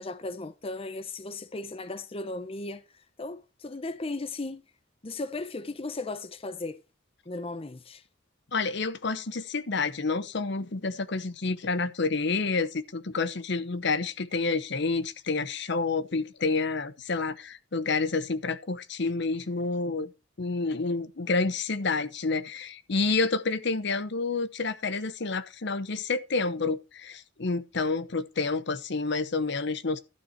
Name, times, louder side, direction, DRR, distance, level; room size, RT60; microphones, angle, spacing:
voice 1, 0.0-2.8 3.2-4.6 5.0-6.8 7.3-8.0, left 2 dB, 30° left, 0.7 m, -36 dB
voice 2, 8.5-20.1 20.4-30.0, left 3 dB, 60° left, 0.9 m, -29 dB
12.0 x 6.8 x 4.5 m
head